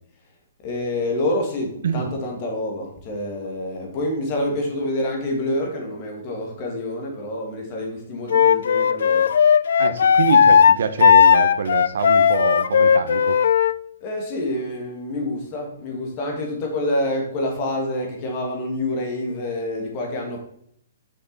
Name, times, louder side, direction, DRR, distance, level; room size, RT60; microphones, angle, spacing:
voice 1, 0.6-9.3 14.0-20.4, left 1 dB, 25° left, 1 dB, 1.7 m, -27 dB
Wind instrument woodwind instrument, 8.3-13.7, left 7 dB, 65° left, 0.3 m, -15 dB
voice 2, 9.8-13.4, right 6 dB, 65° right, 9 dB, 0.8 m, -25 dB
6.4 x 5.9 x 4.0 m, 0.68 s
hypercardioid pair, 170°, 0 cm